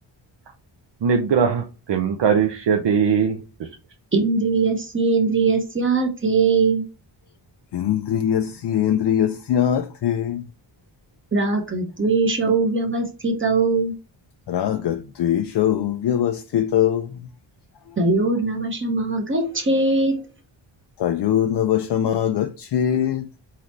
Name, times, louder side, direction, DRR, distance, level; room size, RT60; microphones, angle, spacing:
voice 1, 1.0-3.4, right 6 dB, 60° right, 0.7 m, -20 dB
voice 2, 4.1-6.8 11.3-13.9 18.0-20.2, right 3 dB, 25° right, 1.0 m, -21 dB
voice 3, 7.7-10.4 14.5-17.2 17.9-18.0 21.0-23.4, left 10 dB, 60° left, 0.5 m, -22 dB
4.1 x 3.9 x 3.1 m
wide cardioid pair, 140°, 47 cm